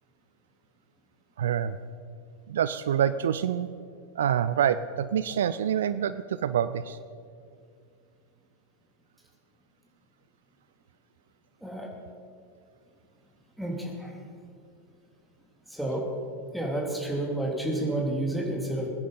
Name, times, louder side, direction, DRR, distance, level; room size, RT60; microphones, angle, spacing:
voice 1, 1.4-1.8 2.5-3.7 4.1-7.0, right 9 dB, 60° right, 14 dB, 0.4 m, -26 dB
voice 2, 13.6-14.1 15.7-16.0 16.5-18.9, right 1 dB, ahead, -1 dB, 3.1 m, -30 dB
21.5 x 10.0 x 5.6 m, 2.3 s
figure-of-eight pair, 90°, 0 cm